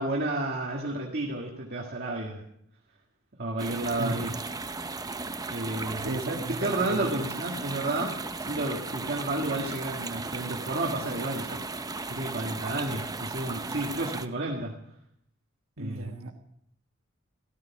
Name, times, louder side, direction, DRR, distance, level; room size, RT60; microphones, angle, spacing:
voice 1, 0.0-2.4 3.4-4.3 5.5-11.6 12.1-14.7 15.8-16.1, right 2 dB, 50° right, -1 dB, 1.8 m, -31 dB
sound 1, 3.6-14.3, right 3 dB, 20° right, 0.7 m, -36 dB
voice 2, 6.0-7.1 15.8-16.3, right 1 dB, 80° right, 5 dB, 1.4 m, -35 dB
14.5 x 14.0 x 6.0 m, 0.73 s
head